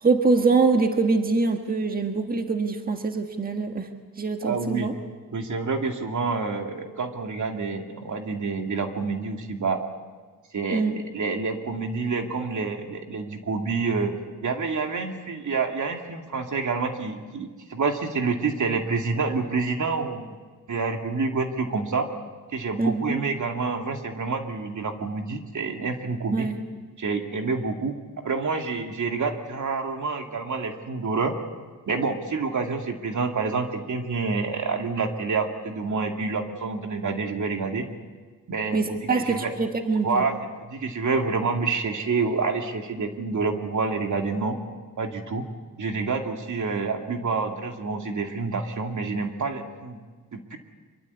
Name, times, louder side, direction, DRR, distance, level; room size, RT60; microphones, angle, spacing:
voice 1, 0.0-3.9 4.2-4.9 10.7-11.0 22.8-23.2 26.3-26.6 38.7-40.2, right 4 dB, 25° right, 5 dB, 1.6 m, -24 dB
voice 2, 4.4-4.9 5.3-9.9 10.5-14.1 14.4-20.4 20.7-22.1 22.5-26.5 27.0-28.0 28.2-31.3 31.9-37.8 38.5-39.0 39.3-39.5 40.0-40.3 40.7-44.6 45.0-45.4 45.8-50.0 50.3-50.6, right 4 dB, 60° right, 4 dB, 2.4 m, -28 dB
25.0 x 23.5 x 8.3 m, 1.4 s
wide cardioid pair, 105°, 34 cm